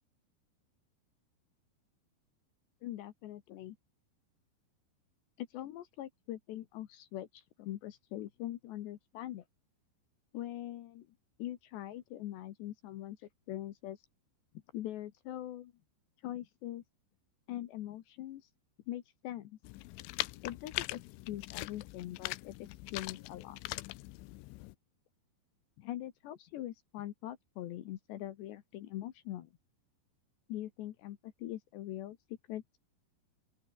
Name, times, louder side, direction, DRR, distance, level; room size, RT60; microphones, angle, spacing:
voice 1, 2.8-3.8 5.4-9.4 10.3-11.1 11.4-13.2 13.5-14.0 14.7-15.7 16.2-16.8 17.5-18.4 18.9-19.6 20.4-21.0 21.3-23.6 25.8-29.5 30.5-32.2 32.5-32.8, left 13 dB, 70° left, 3.2 m, -42 dB
sound 1, 19.6-24.7, left 20 dB, 90° left, 3.2 m, -41 dB
open air
omnidirectional pair, 5.6 m